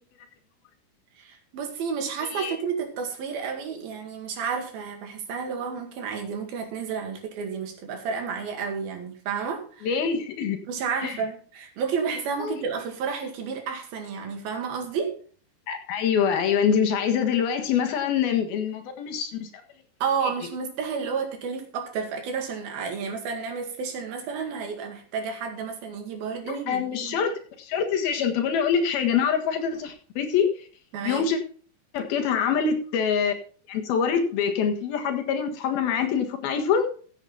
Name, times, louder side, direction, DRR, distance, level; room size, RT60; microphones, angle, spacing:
voice 1, 1.2-9.9 10.7-15.2 20.0-27.2 30.9-31.2, right 6 dB, 85° right, 4 dB, 4.0 m, -31 dB
voice 2, 9.8-10.6 11.0-11.1 12.4-12.5 15.7-19.5 26.5-30.5 31.0-31.4 31.9-33.3 33.7-36.9, left 7 dB, 85° left, 5 dB, 3.5 m, -25 dB
15.0 x 8.2 x 4.2 m, 0.42 s
omnidirectional pair, 4.2 m